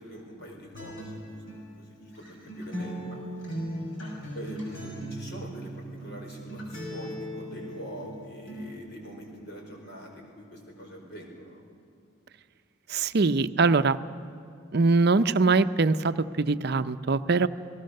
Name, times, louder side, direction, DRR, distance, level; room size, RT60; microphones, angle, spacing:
voice 1, 0.0-3.2 4.3-11.6, equal, 55° left, 1 dB, 5.0 m, -44 dB
Acoustic guitar, 0.7-8.7, equal, 75° left, 6.3 m, -38 dB
voice 2, 12.9-14.0 14.7-17.5, right 3 dB, 55° right, 12 dB, 0.6 m, -22 dB
29.0 x 19.0 x 6.6 m, 2.4 s
head